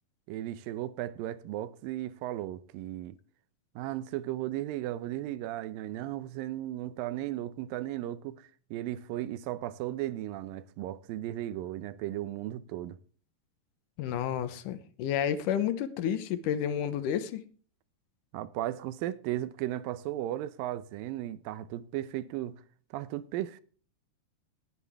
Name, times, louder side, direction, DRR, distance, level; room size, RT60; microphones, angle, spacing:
voice 1, 0.3-3.2 3.8-13.0 18.3-22.6 22.9-23.6, right 14 dB, 85° right, 2.5 m, -36 dB
voice 2, 14.0-17.4, left 9 dB, 75° left, 2.4 m, -30 dB
19.5 x 7.5 x 3.5 m
omnidirectional pair, 3.9 m